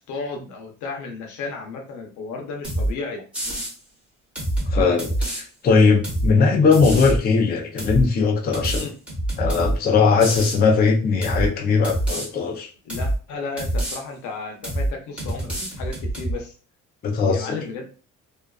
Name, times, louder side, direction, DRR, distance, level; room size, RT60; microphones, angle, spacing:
voice 1, 0.0-3.2 8.7-8.9 12.8-16.5 17.3-17.8, left 4 dB, 80° left, 3 dB, 0.8 m, -33 dB
sound 1, 2.6-2.9 3.3-3.7 4.4-5.4 6.0-6.3 6.7-7.2 7.8-8.1 8.5-9.8 10.2-10.6 11.2-11.5 11.8-12.3 12.9-13.2 13.6-14.0 14.6-14.9 15.2-16.3, right 1 dB, 5° right, 0.9 m, -25 dB
voice 2, 4.7-8.9 9.4-12.7 17.0-17.6, left 4 dB, 35° left, 1 dB, 0.5 m, -19 dB
2.5 x 2.3 x 2.3 m, 0.38 s
cardioid pair, 130°, 29 cm